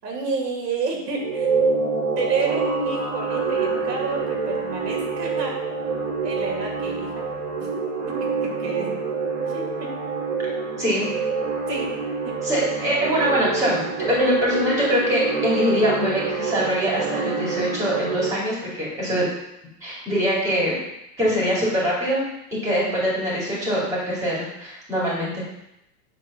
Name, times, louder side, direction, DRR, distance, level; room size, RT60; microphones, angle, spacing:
voice 1, 0.0-5.6 6.2-7.2 7.6-7.7 8.1-9.0 9.4-9.9 11.6-11.9 12.2-12.4 14.5-14.6, right 4 dB, 85° right, 1 dB, 2.5 m, -30 dB
sound 1, 1.2-18.3, right 4 dB, 30° right, 1.6 m, -26 dB
voice 2, 12.4-19.3 19.8-20.8 21.2-25.4, equal, 5° right, -5 dB, 2.2 m, -23 dB
8.4 x 3.6 x 6.0 m, 0.84 s
supercardioid pair, 165°, 48 cm